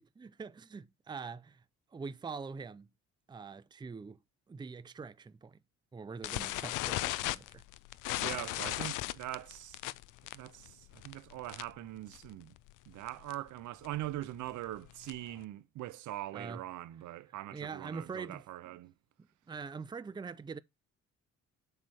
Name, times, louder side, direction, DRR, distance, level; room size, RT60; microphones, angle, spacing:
voice 1, 0.0-1.6 1.9-2.9 3.3-4.2 4.5-5.6 5.9-7.6 16.3-16.6 17.5-18.4 19.2-20.6, right 5 dB, 15° right, 0.4 m, -44 dB
sound 1, 6.2-11.9 12.1-12.4 12.7-12.8 13.1-13.3 13.8-15.4, left 17 dB, 90° left, 0.5 m, -37 dB
voice 2, 8.1-9.8 10.3-12.5 12.9-18.9, right 15 dB, 80° right, 0.7 m, -42 dB
7.6 x 3.3 x 6.1 m
cardioid pair, 90°, 30 cm